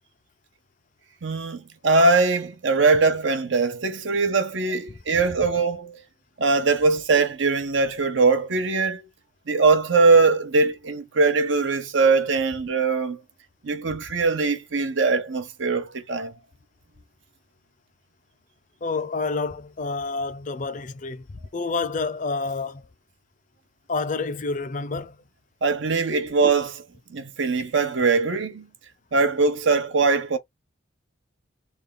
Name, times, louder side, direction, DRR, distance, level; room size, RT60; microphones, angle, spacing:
voice 1, 1.2-6.0 6.4-9.0 9.5-13.2 13.6-16.3 25.6-28.7 29.1-30.4, right 4 dB, 70° right, 0.7 m, -21 dB
voice 2, 18.8-21.3 21.5-22.8 23.9-25.2, left 4 dB, 40° left, 0.5 m, -28 dB
3.5 x 2.3 x 3.9 m
head